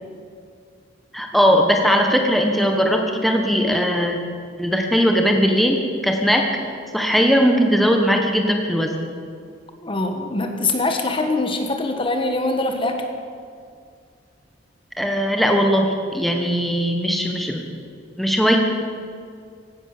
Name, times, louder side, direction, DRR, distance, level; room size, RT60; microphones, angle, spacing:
voice 1, 1.1-4.2 4.6-6.6 6.9-9.1 15.0-17.7 18.2-18.6, equal, ahead, 2 dB, 1.2 m, -19 dB
voice 2, 9.8-13.0, left 2 dB, 30° left, 5 dB, 1.3 m, -23 dB
16.5 x 11.5 x 6.7 m, 2.3 s
head